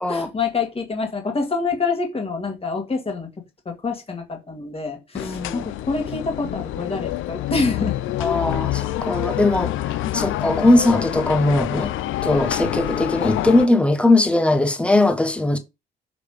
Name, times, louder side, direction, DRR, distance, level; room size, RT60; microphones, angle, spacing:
voice 1, 0.1-3.3 3.7-8.0 10.2-10.3, left 4 dB, 30° left, 2.1 m, -26 dB
sound 1, 5.1-13.7, left 14 dB, 85° left, 0.5 m, -27 dB
voice 2, 5.1-5.6 8.2-11.9 12.2-15.6, left 2 dB, 5° left, 1.1 m, -19 dB
7.0 x 3.4 x 4.9 m
cardioid pair, 90°, 20 cm